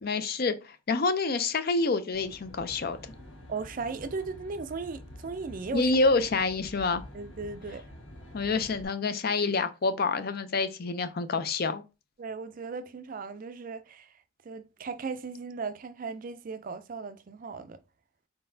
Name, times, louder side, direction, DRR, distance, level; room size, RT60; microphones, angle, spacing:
voice 1, 0.0-3.0 5.7-7.0 8.3-11.8, left 3 dB, 50° left, 0.5 m, -27 dB
Aircraft, 2.1-8.9, left 1 dB, 75° left, 1.8 m, -47 dB
voice 2, 3.5-6.0 7.1-7.8 12.2-14.1 14.4-17.8, right 4 dB, 40° right, 0.4 m, -37 dB
4.4 x 3.8 x 2.6 m
head